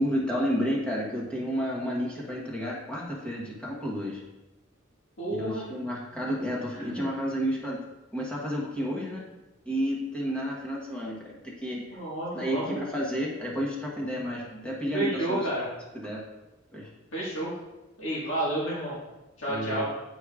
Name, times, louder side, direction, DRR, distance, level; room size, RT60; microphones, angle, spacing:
voice 1, 0.0-4.2 5.3-7.8 8.1-9.3 9.6-12.0 12.3-15.5 16.0-16.2 16.7-16.9 19.5-19.8, equal, 5° left, -5 dB, 1.1 m, -31 dB
voice 2, 5.2-5.7 6.7-7.1 11.9-12.8 14.9-15.7 17.1-17.5 18.0-19.0 19.4-19.8, right 1 dB, 70° left, -8 dB, 1.7 m, -30 dB
9.6 x 4.8 x 2.4 m, 1.0 s
head